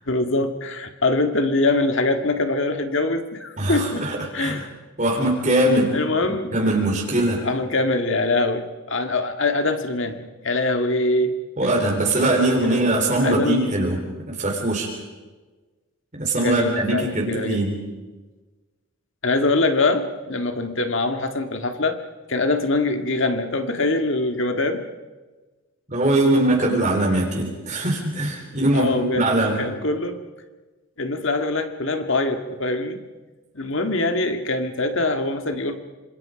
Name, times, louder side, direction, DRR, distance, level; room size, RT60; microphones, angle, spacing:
voice 1, 0.1-4.1 4.3-4.7 5.9-6.6 7.4-11.4 12.5-12.8 13.2-13.7 16.4-17.6 19.2-22.0 22.3-24.8 28.7-29.3 29.6-30.2 31.0-33.0 33.5-35.8, left 2 dB, 60° left, 6 dB, 1.9 m, -23 dB
voice 2, 3.6-4.6 5.0-6.0 6.5-7.4 11.6-14.9 16.1-17.8 25.9-29.6, right 1 dB, 35° right, -1 dB, 3.8 m, -21 dB
27.0 x 26.5 x 5.2 m, 1.3 s
head